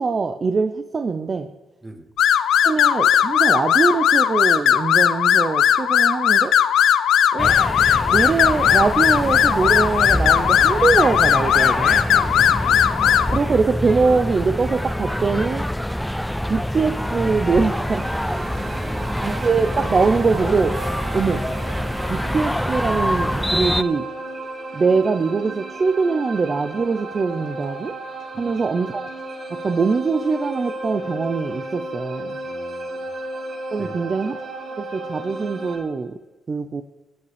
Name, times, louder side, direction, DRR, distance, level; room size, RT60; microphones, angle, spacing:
voice 1, 0.0-1.5 2.6-6.5 7.3-7.5 8.1-12.0 13.3-15.6 16.5-18.5 19.2-20.8 21.1-21.4 22.1-24.0 24.7-27.9 28.4-29.1 29.6-32.4 33.7-34.4 34.8-36.2 36.5-36.8, right 4 dB, 35° right, 7 dB, 0.6 m, -22 dB
sound 1, 2.2-13.4, left 9 dB, 75° left, 0.6 m, -17 dB
sound 2, 7.4-23.8, equal, 5° left, 0.4 m, -25 dB
voice 2, 11.9-12.7 18.3-19.2 28.3-28.5 32.4-33.1 33.8-34.0, right 1 dB, 20° right, 5 dB, 1.6 m, -39 dB
sound 3, 17.4-35.8, right 2 dB, 60° right, 4.3 m, -34 dB
21.5 x 8.4 x 3.4 m, 1.1 s
cardioid pair, 90°, 0 cm